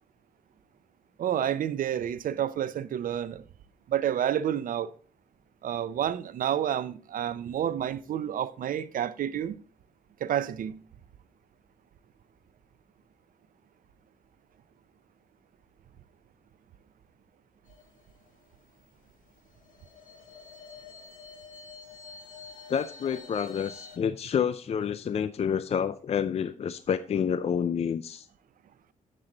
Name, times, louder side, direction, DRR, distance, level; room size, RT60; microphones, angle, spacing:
voice 1, 1.2-3.4 3.9-4.9 5.6-9.5 10.2-10.8, right 10 dB, 75° right, 0.5 m, -29 dB
sound 1, 17.7-18.9 19.5-24.0, left 4 dB, 65° left, 2.5 m, -48 dB
voice 2, 22.7-28.3, left 7 dB, 45° left, 0.4 m, -29 dB
7.7 x 7.5 x 3.8 m
cardioid pair, 90°, 14 cm